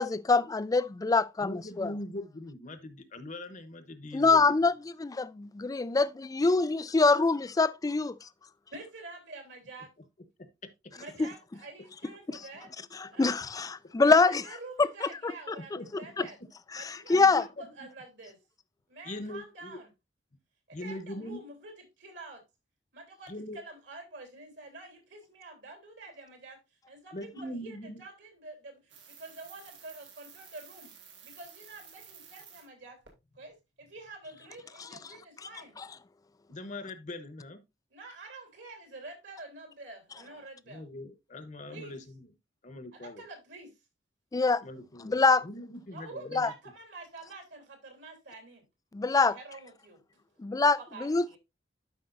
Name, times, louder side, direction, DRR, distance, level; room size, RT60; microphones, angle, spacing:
voice 1, 0.0-1.9 4.1-4.7 5.0-8.1 11.2-11.3 12.3-12.4 12.9-14.4 14.8-15.3 16.2-16.3 16.7-17.4 35.8-35.9 44.3-44.6 45.0-45.5 46.3-46.5 48.9-49.3 50.4-51.4, left 3 dB, 20° left, 0.3 m, -25 dB
voice 2, 1.4-4.6 10.4-10.5 15.8-16.1 17.1-17.9 19.0-19.8 20.7-21.4 23.3-23.6 27.1-28.0 36.5-37.6 40.6-42.3 42.6-43.2 44.6-46.4, left 1 dB, 45° left, 1.0 m, -41 dB
voice 3, 8.7-9.9 10.9-12.7 13.1-13.3 14.0-16.4 16.7-18.4 18.9-19.9 20.7-22.4 22.9-26.6 26.9-30.9 31.2-33.0 33.3-35.7 37.9-40.8 41.7-42.0 42.9-43.8 45.9-48.6 49.2-50.0 50.8-51.4, right 2 dB, 70° right, 3.1 m, -47 dB
sound 1, 28.9-32.7 33.1-33.2, right 7 dB, 90° right, 2.5 m, -52 dB
12.0 x 5.2 x 2.5 m
head